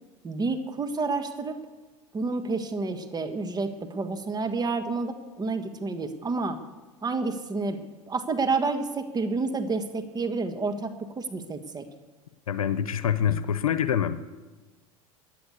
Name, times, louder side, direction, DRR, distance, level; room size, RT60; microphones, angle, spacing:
voice 1, 0.2-1.5 2.1-6.6 7.0-7.8 8.1-11.9, right 3 dB, 20° right, 7 dB, 1.5 m, -29 dB
voice 2, 12.5-14.2, left 9 dB, 90° left, 13 dB, 0.8 m, -25 dB
15.5 x 10.0 x 8.2 m, 1.2 s
hypercardioid pair, 95°, 18 cm